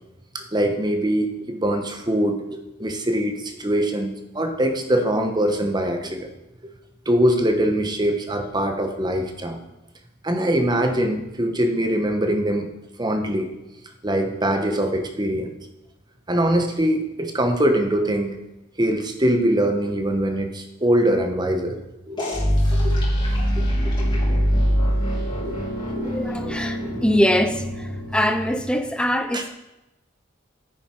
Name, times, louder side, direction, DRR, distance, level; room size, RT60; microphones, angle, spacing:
voice 1, 0.3-6.3 7.0-9.6 10.2-12.7 13.0-13.5 14.0-15.5 16.3-18.3 18.8-21.8 22.1-22.3 22.7-23.1 23.6-24.5 25.2-26.2 26.8-27.0 29.3-29.4, right 1 dB, 20° right, 5 dB, 1.2 m, -23 dB
sound 1, 22.2-28.8, equal, 25° left, 3.1 m, -23 dB
voice 2, 26.0-27.6 28.1-29.5, equal, 5° left, 7 dB, 0.7 m, -22 dB
10.0 x 9.1 x 4.6 m, 0.97 s
head